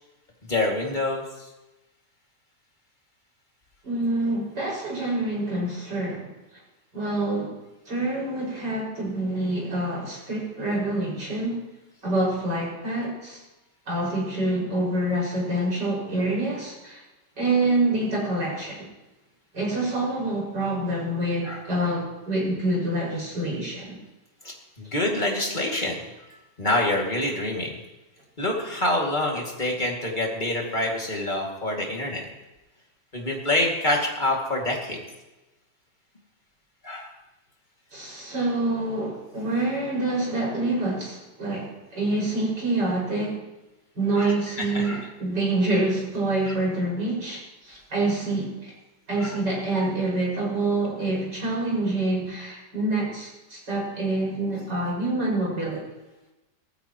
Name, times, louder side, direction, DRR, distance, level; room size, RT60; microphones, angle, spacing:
voice 1, 0.5-1.2 21.4-21.6 24.4-26.0 26.6-27.8 28.4-32.3 33.1-35.0 36.8-37.1 44.2-45.1 46.4-46.5 49.2-49.4 49.7-49.9, left 1 dB, 25° left, -1 dB, 2.6 m, -26 dB
voice 2, 3.8-6.3 6.9-7.5 7.9-11.6 12.0-13.4 13.9-17.0 17.4-18.9 19.5-24.0 37.9-43.4 43.9-48.7 49.1-55.8, right 2 dB, 85° right, -4 dB, 6.6 m, -26 dB
18.5 x 14.5 x 3.1 m, 1.0 s
omnidirectional pair, 1.8 m